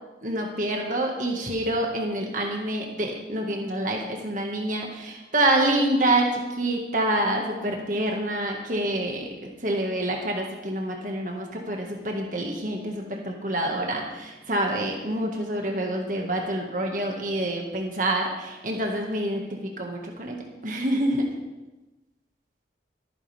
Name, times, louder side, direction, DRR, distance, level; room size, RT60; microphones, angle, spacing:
voice 1, 0.2-19.4 19.8-20.4 20.6-21.3, right 1 dB, 45° right, 1 dB, 1.8 m, -27 dB
22.0 x 9.9 x 3.5 m, 1.1 s
head